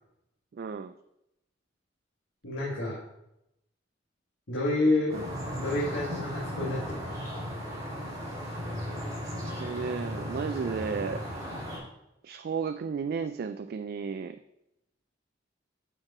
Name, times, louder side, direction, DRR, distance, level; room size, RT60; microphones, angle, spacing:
voice 1, 0.6-0.9 5.1-5.2 9.6-11.2 12.2-14.4, right 5 dB, 55° right, 9 dB, 0.3 m, -33 dB
voice 2, 2.4-3.0 4.5-5.1 5.6-7.1, left 2 dB, 70° left, -5 dB, 1.7 m, -28 dB
sound 1, 5.1-11.8, equal, 20° right, 3.4 m, -36 dB
8.8 x 4.9 x 4.8 m, 0.85 s
head